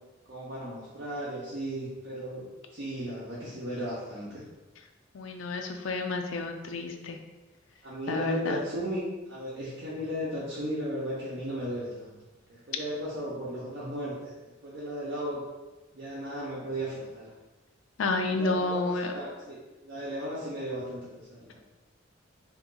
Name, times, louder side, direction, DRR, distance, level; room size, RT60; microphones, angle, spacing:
voice 1, 0.3-2.4 2.7-4.4 7.8-12.2 12.5-14.3 14.6-15.4 15.9-17.3 18.3-19.6 19.8-21.6, equal, 60° right, -9 dB, 0.8 m, -35 dB
voice 2, 5.1-7.2 8.1-8.6 18.0-19.1, left 3 dB, 80° left, 4 dB, 0.4 m, -30 dB
2.8 x 2.5 x 3.8 m, 1.1 s
head